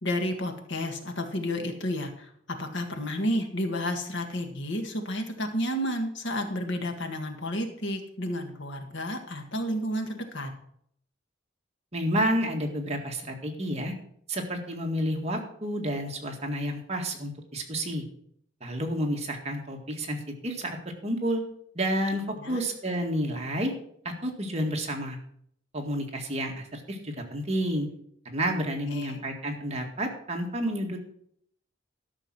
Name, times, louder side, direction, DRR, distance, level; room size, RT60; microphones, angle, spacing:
voice 1, 0.0-2.3 2.6-10.5 22.3-22.7 28.9-29.2, equal, 70° left, 5 dB, 1.8 m, -31 dB
voice 2, 11.9-13.9 14.3-18.0 18.6-20.8 21.0-21.4 21.8-23.7 24.1-25.2 25.7-27.9 28.3-31.0, equal, 35° right, 2 dB, 1.9 m, -30 dB
12.5 x 6.4 x 6.1 m, 0.68 s
head